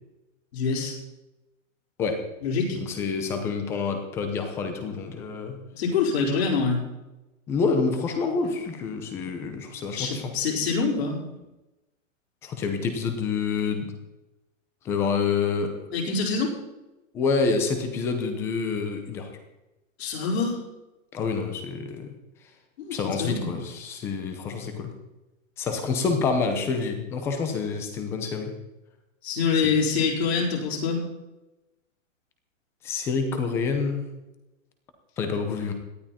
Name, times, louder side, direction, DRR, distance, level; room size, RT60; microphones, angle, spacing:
voice 1, 0.5-0.9 2.4-2.8 5.8-6.8 10.0-11.2 15.9-16.5 20.0-20.6 22.8-23.5 29.2-31.0, left 5 dB, 50° left, -2 dB, 5.0 m, -25 dB
voice 2, 2.7-5.6 7.5-10.3 12.4-13.9 14.8-15.7 17.1-19.3 21.1-22.1 22.9-24.9 25.6-28.5 32.8-34.1 35.2-35.7, left 5 dB, 5° left, 6 dB, 0.6 m, -27 dB
18.0 x 12.5 x 4.3 m, 1.0 s
hypercardioid pair, 170°, 40 cm